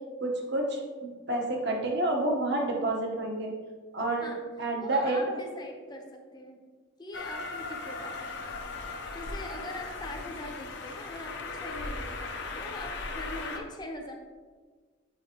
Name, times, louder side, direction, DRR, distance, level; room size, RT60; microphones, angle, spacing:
voice 1, 0.2-3.5 3.9-4.3 4.6-5.2, right 2 dB, 60° right, 0 dB, 1.0 m, -29 dB
voice 2, 4.8-6.6 7.0-8.5 9.1-14.1, left 1 dB, 20° left, 2 dB, 0.7 m, -42 dB
Train, 7.1-13.6, left 3 dB, 60° left, 0.7 m, -38 dB
7.7 x 5.3 x 2.9 m, 1.5 s
head